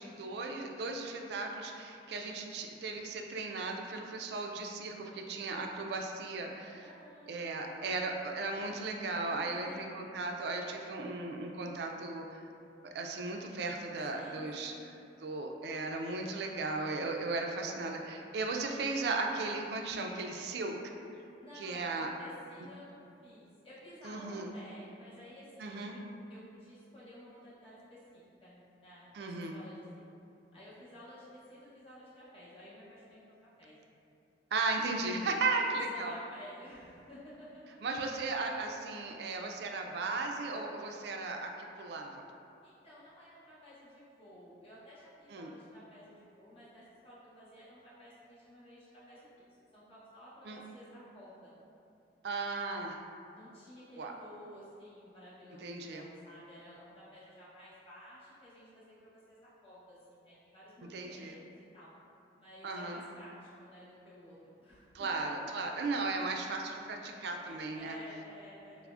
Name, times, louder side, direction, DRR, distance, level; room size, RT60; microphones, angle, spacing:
voice 1, 0.0-6.9 7.3-12.4 12.9-14.7 15.2-20.7 21.6-22.1 24.0-24.5 25.6-25.9 29.1-29.5 34.5-36.1 37.8-41.5 41.8-42.1 45.3-45.5 50.4-50.6 52.2-53.0 54.0-54.1 55.6-56.0 60.9-61.3 62.6-63.0 64.9-68.0, right 3 dB, 60° right, 2 dB, 0.3 m, -36 dB
voice 2, 6.8-8.0 9.4-9.9 14.1-14.9 21.4-26.0 26.3-30.0 30.5-33.8 35.4-35.6 35.9-37.7 42.6-49.3 49.7-51.5 53.3-61.9 62.4-65.6 67.4-68.9, equal, 30° left, -10 dB, 0.9 m, -53 dB
5.7 x 2.0 x 2.4 m, 2.6 s
head